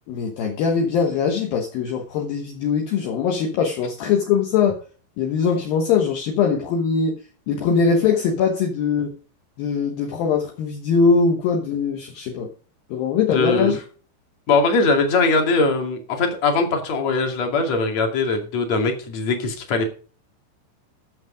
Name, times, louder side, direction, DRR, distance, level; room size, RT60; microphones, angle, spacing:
voice 1, 0.1-4.8 5.2-7.2 7.5-9.1 9.6-12.5 12.9-13.8, left 5 dB, 70° left, 2 dB, 2.2 m, -21 dB
voice 2, 13.3-13.7 14.5-19.9, left 3 dB, 45° left, 4 dB, 2.5 m, -21 dB
14.5 x 6.4 x 5.1 m, 0.39 s
omnidirectional pair, 5.9 m